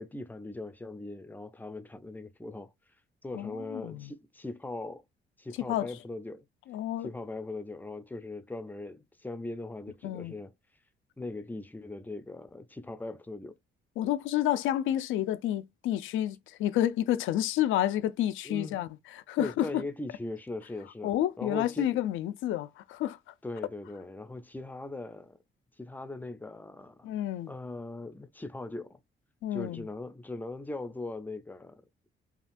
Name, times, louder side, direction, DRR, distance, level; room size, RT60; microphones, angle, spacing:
voice 1, 0.0-2.7 3.2-5.0 5.4-6.5 7.0-10.5 11.2-13.5 18.4-18.8 19.4-21.9 23.4-25.4 25.8-27.1 27.5-29.0 29.5-31.8, left 2 dB, 10° left, 0.5 m, -40 dB
voice 2, 3.3-4.1 5.6-5.9 6.7-7.1 10.0-10.3 14.0-19.8 21.0-23.2 27.0-27.5 29.4-29.9, left 12 dB, 85° left, 0.4 m, -30 dB
3.6 x 2.4 x 2.5 m
cardioid pair, 90°, 20 cm